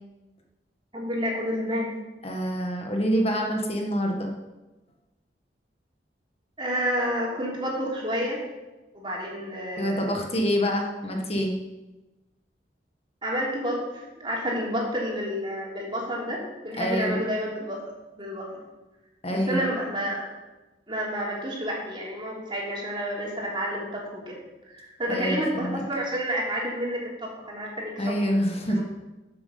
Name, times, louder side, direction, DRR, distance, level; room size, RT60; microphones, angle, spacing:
voice 1, 0.9-1.9 6.6-8.4 8.9-10.2 13.2-17.8 18.1-18.5 19.3-20.3 20.9-24.4 24.7-28.3 28.7-28.8, equal, 30° right, -3 dB, 3.4 m, -30 dB
voice 2, 2.2-4.3 9.8-11.5 16.8-17.2 19.2-19.7 25.1-25.8 28.0-28.8, equal, 35° left, 1 dB, 1.5 m, -26 dB
11.0 x 7.6 x 6.8 m, 1.1 s
head